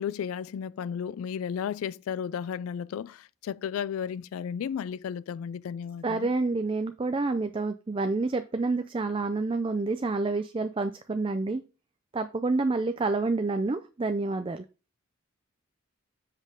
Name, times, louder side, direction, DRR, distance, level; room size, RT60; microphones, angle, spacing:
voice 1, 0.0-6.3, left 8 dB, 85° left, 0.3 m, -34 dB
voice 2, 6.0-11.6 12.1-14.6, right 3 dB, 25° right, 0.4 m, -28 dB
7.4 x 5.4 x 3.7 m
head